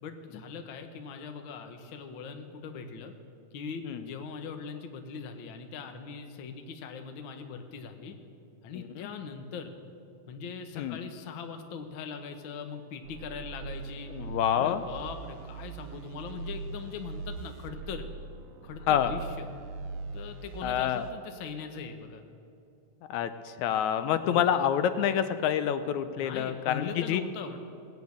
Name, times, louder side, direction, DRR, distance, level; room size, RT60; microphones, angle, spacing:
voice 1, 0.0-3.1 3.5-8.2 8.6-9.7 10.3-14.1 14.5-18.0 18.6-19.5 20.1-22.2 24.2-24.5 26.2-27.6, left 6 dB, 60° left, 6 dB, 1.4 m, -41 dB
sound 1, 13.0-21.1, right 4 dB, 80° right, 1.3 m, -41 dB
voice 2, 14.1-14.8 18.9-19.1 20.6-21.1 23.1-27.2, left 9 dB, 80° left, 11 dB, 1.9 m, -27 dB
18.0 x 8.0 x 8.5 m, 2.6 s
omnidirectional pair, 3.3 m